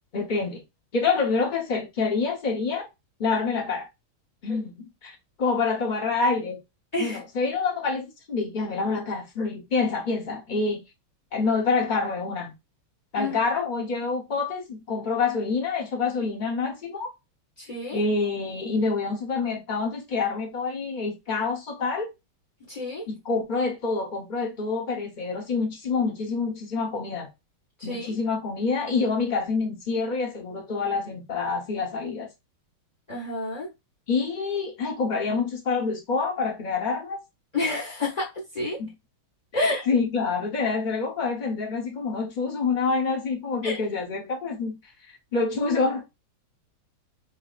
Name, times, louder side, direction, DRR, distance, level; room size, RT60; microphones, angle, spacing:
voice 1, 0.1-0.6 0.9-2.9 3.2-3.9 4.4-6.6 7.0-10.8 11.3-12.5 13.1-17.1 17.9-22.1 23.1-27.3 27.8-32.3 34.1-37.2 38.8-38.9 39.5-44.8 45.3-46.1, left 4 dB, 65° left, 0.4 m, -27 dB
voice 2, 17.6-18.0 22.7-23.0 27.8-28.1 33.1-33.7 37.5-38.8 39.5-39.9 43.6-43.8, left 2 dB, 30° left, 0.7 m, -29 dB
4.6 x 2.8 x 2.4 m
omnidirectional pair, 2.3 m